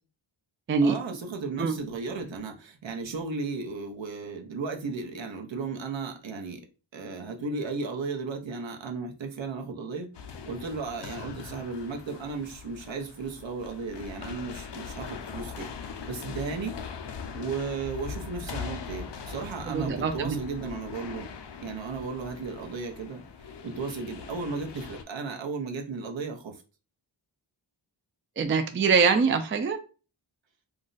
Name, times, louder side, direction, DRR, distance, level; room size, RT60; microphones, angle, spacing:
voice 1, 0.8-6.6 6.9-16.7 17.3-21.3 21.6-23.2 23.6-26.6, right 4 dB, 65° right, 0.8 m, -35 dB
sound 1, 10.1-25.0, left 6 dB, 60° left, 0.6 m, -41 dB
voice 2, 19.7-20.4 28.4-29.8, right 5 dB, 25° right, 0.4 m, -23 dB
2.5 x 2.1 x 3.8 m
cardioid pair, 55°, 48 cm